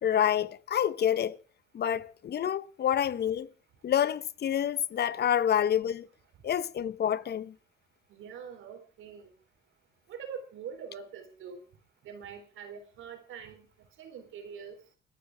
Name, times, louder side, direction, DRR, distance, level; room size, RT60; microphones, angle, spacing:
voice 1, 0.0-1.4 1.7-3.5 3.8-6.1 6.4-7.5, left 9 dB, 55° left, 0.9 m, -28 dB
voice 2, 8.1-9.3 10.1-11.6 12.0-13.7 14.0-14.8, right 7 dB, 80° right, 3.7 m, -44 dB
29.5 x 10.0 x 3.5 m
cardioid pair, 90°, 20 cm